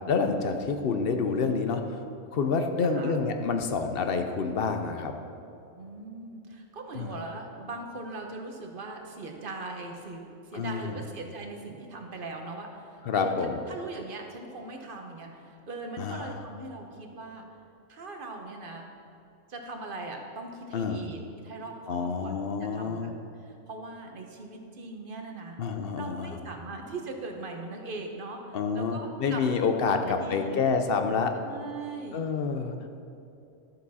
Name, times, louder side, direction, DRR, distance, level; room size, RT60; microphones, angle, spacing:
voice 1, 0.1-2.0 2.3-5.1 6.9-7.1 10.5-11.0 13.1-13.6 16.0-16.4 20.7-21.0 21.9-23.1 25.6-26.4 28.5-31.3 32.1-32.9, left 5 dB, 55° left, 6 dB, 0.8 m, -28 dB
voice 2, 2.8-3.2 5.7-10.2 10.5-13.3 13.7-17.4 17.9-18.9 19.5-22.3 22.6-23.1 23.4-25.6 26.0-29.4 29.8-30.6 31.4-32.2, right 3 dB, 45° right, 3 dB, 1.1 m, -40 dB
12.5 x 7.1 x 4.2 m, 2.7 s
omnidirectional pair, 1.3 m